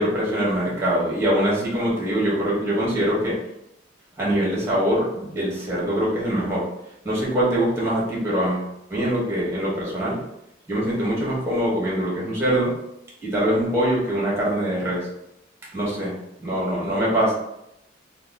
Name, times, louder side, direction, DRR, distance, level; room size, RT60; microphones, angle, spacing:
voice 1, 0.0-3.4 4.2-6.7 7.0-10.2 10.7-12.7 13.2-15.1 15.7-16.1 16.4-17.3, equal, 15° right, -6 dB, 1.2 m, -23 dB
3.0 x 2.3 x 3.7 m, 0.81 s
head